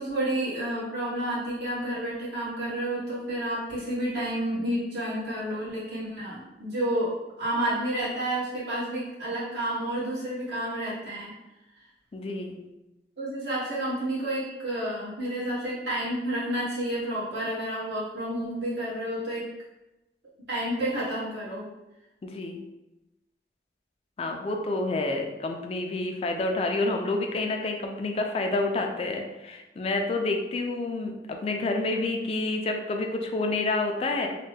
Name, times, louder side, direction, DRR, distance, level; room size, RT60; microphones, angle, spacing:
voice 1, 0.0-11.3 13.2-19.5 20.5-21.7, right 1 dB, 75° right, -8 dB, 1.5 m, -30 dB
voice 2, 12.1-12.6 22.2-22.6 24.2-34.3, left 2 dB, 35° left, 3 dB, 0.3 m, -29 dB
3.1 x 2.2 x 3.2 m, 0.98 s
head